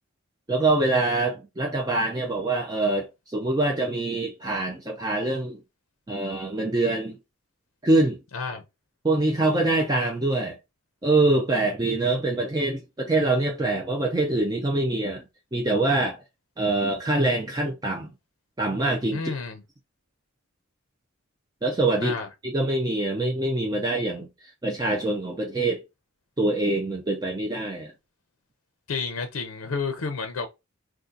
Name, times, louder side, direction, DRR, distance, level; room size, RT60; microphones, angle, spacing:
voice 1, 0.5-5.6 6.1-7.2 7.8-8.2 9.0-10.6 11.0-15.2 15.5-16.2 16.6-18.1 18.6-19.3 21.6-22.2 22.4-24.3 24.6-25.8 26.4-27.9, right 2 dB, 20° right, 0.4 m, -24 dB
voice 2, 19.1-19.6 22.0-22.3 28.9-30.5, left 4 dB, 70° left, 0.5 m, -30 dB
2.6 x 2.4 x 3.8 m
head